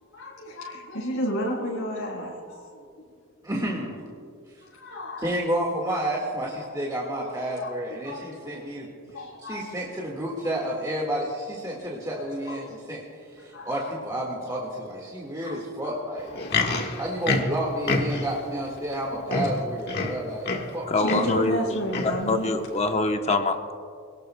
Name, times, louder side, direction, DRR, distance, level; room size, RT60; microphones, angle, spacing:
voice 1, 0.1-2.9 4.7-5.4 7.1-7.3 7.5-7.7 8.0-8.6 9.1-9.6 12.1-12.7 13.4-13.7 15.4-15.9 16.2-16.3 21.0-22.5, equal, 80° left, -6 dB, 4.4 m, -32 dB
voice 2, 3.4-4.0 4.6-4.7 5.2-8.9 9.4-16.3 17.0-21.6, right 1 dB, 20° right, -3 dB, 1.8 m, -30 dB
Livestock farm animals working animals, 16.2-18.4 19.0-19.1 19.3-20.8 21.0-21.4 21.9-22.2 22.9-23.0, left 3 dB, 50° left, 1.5 m, -27 dB
voice 3, 20.9-21.8 22.3-23.7, left 2 dB, 30° left, 5 dB, 0.9 m, -25 dB
26.0 x 18.5 x 2.3 m, 2.3 s
head